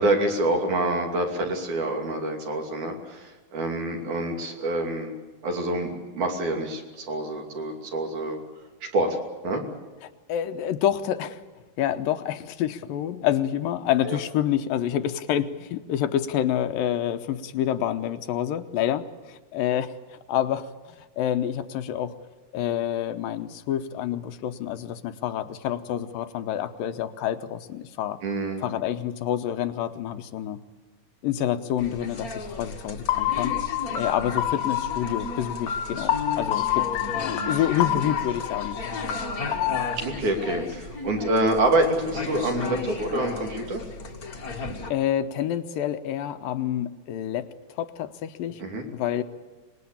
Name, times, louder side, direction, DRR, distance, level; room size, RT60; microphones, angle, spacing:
voice 1, 0.0-5.1 5.4-8.4 8.9-9.2 9.4-9.6 14.1-14.2 28.2-28.6 40.0-43.8 48.6-48.8, right 1 dB, 60° right, 2 dB, 4.2 m, -26 dB
voice 2, 10.3-11.4 11.8-20.7 21.2-22.2 22.5-28.2 28.6-30.6 31.2-33.6 33.9-36.9 37.1-38.8 44.9-48.6 48.9-49.2, left 11 dB, 85° left, 9 dB, 2.7 m, -28 dB
sound 1, 31.8-44.9, left 3 dB, 35° left, 1.5 m, -35 dB
sound 2, 33.1-39.9, left 11 dB, 65° left, 2.2 m, -28 dB
25.0 x 20.5 x 8.7 m, 1.2 s
omnidirectional pair, 4.0 m